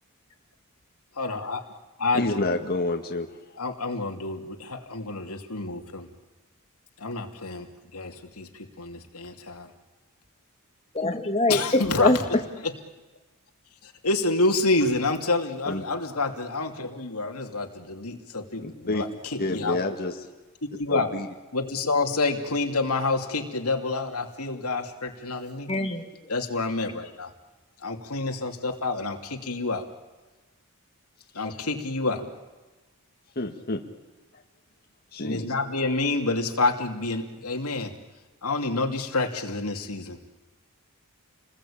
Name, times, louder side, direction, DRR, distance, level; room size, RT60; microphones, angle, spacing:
voice 1, 1.2-1.7 2.0-2.5 3.6-6.1 7.0-9.7 11.5-12.1 13.8-19.8 20.7-21.1 21.5-25.7 26.3-27.3 27.8-29.9 31.3-32.3 35.2-37.9 38.4-40.3, left 3 dB, 90° left, 4 dB, 2.9 m, -28 dB
voice 2, 2.1-3.6 15.7-15.8 18.6-19.0 19.4-20.2 20.9-21.3 33.4-33.8 35.1-35.5, left 2 dB, 45° left, 2 dB, 2.0 m, -28 dB
voice 3, 10.9-12.4 25.7-26.3, left 2 dB, 30° left, 3 dB, 2.2 m, -24 dB
29.5 x 21.0 x 8.8 m, 1.2 s
head